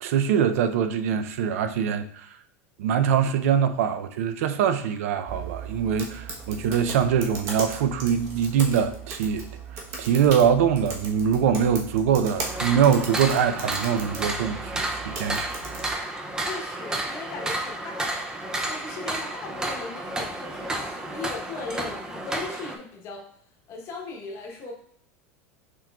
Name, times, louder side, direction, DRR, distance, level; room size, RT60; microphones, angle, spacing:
voice 1, 0.0-2.3 2.8-9.5 10.0-15.5, right 8 dB, 85° right, 0.4 m, -23 dB
sound 1, 5.3-15.9, right 4 dB, 40° right, 0.9 m, -37 dB
sound 2, 12.4-22.8, right 1 dB, 10° right, 0.3 m, -31 dB
voice 2, 16.4-18.4 18.6-23.3 23.7-24.7, left 3 dB, 35° left, 0.8 m, -38 dB
6.0 x 3.0 x 2.2 m
supercardioid pair, 160°, 8 cm